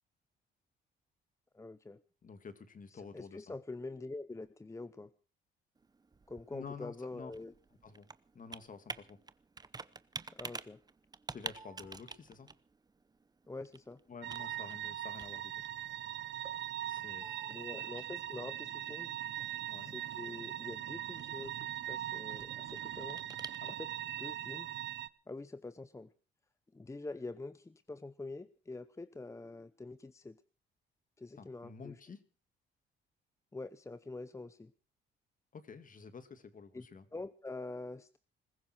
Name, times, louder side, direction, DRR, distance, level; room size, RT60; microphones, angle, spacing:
voice 1, 1.5-2.0 2.9-5.1 6.3-7.5 10.3-10.8 13.5-14.0 17.5-19.1 19.8-23.2 23.8-23.9 24.2-24.7 25.3-26.1 26.7-30.4 31.2-32.0 33.5-34.7 36.7-36.9 37.1-38.2, left 2 dB, 15° left, 14 dB, 0.7 m, -45 dB
voice 2, 2.2-3.5 6.5-7.3 7.8-8.1 8.3-9.2 11.3-12.5 14.1-15.6 16.9-17.5 17.8-18.0 19.7-19.9 23.6-23.8 31.4-32.2 35.5-37.1, left 5 dB, 40° left, 11 dB, 2.3 m, -50 dB
Computer keyboard, 5.8-24.0, right 4 dB, 20° right, 0.7 m, -51 dB
sound 1, 14.2-25.1, right 12 dB, 65° right, 0.8 m, -41 dB
21.0 x 15.0 x 4.6 m, 0.39 s
cardioid pair, 90°, 20 cm